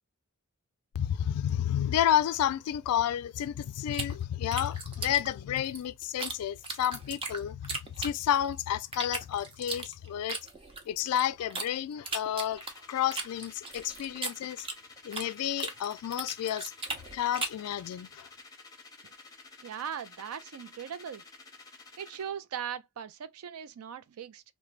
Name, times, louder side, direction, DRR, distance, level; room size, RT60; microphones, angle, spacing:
voice 1, 0.9-10.4 10.9-14.7 15.0-16.7 17.1-18.3, left 10 dB, 90° left, 0.3 m, -31 dB
sound 1, 3.9-6.4 6.6-8.5 8.9-11.7 12.1-15.3 15.6-17.7, right 3 dB, 25° right, 0.6 m, -37 dB
sound 2, 12.5-22.3, left 3 dB, 15° left, 0.6 m, -52 dB
voice 2, 19.6-21.2 22.0-24.4, right 8 dB, 75° right, 0.4 m, -39 dB
3.1 x 2.1 x 2.3 m
head